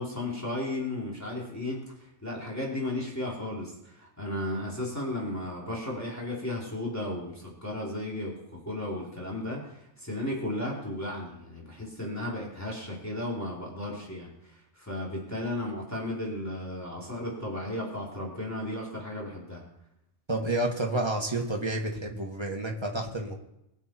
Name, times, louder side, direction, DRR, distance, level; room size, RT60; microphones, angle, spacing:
voice 1, 0.0-19.6, left 1 dB, 10° left, -4 dB, 3.7 m, -34 dB
voice 2, 20.3-23.3, right 1 dB, 20° right, 1 dB, 1.9 m, -30 dB
22.5 x 8.2 x 4.6 m, 0.83 s
omnidirectional pair, 1.3 m